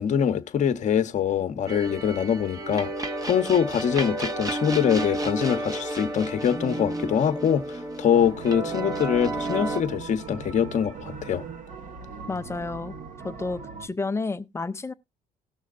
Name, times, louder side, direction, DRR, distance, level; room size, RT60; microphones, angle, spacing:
voice 1, 0.0-2.9 3.2-11.4, left 8 dB, 45° left, 0.9 m, -24 dB
sound 1, 1.7-9.8, right 2 dB, 20° right, 0.9 m, -31 dB
sound 2, 8.1-13.9, right 4 dB, 50° right, 1.1 m, -40 dB
voice 2, 12.3-12.9 13.2-14.9, left 3 dB, 15° left, 0.5 m, -31 dB
18.0 x 6.3 x 2.4 m
cardioid pair, 110°, 17 cm